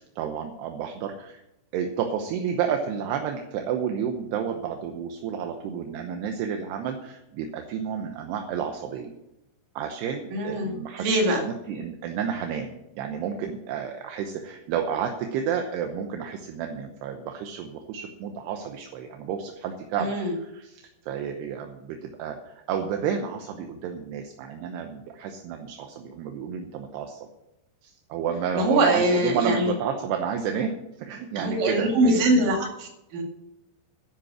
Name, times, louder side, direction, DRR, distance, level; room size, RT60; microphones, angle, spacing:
voice 1, 0.0-1.4 1.7-9.1 9.8-27.3 27.8-32.2, right 7 dB, 75° right, 4 dB, 2.9 m, -31 dB
voice 2, 10.3-10.7 11.0-11.4 20.0-20.3 28.5-29.7 31.4-33.2, right 1 dB, 55° right, 1 dB, 3.6 m, -23 dB
11.0 x 10.5 x 6.3 m, 0.89 s
omnidirectional pair, 5.0 m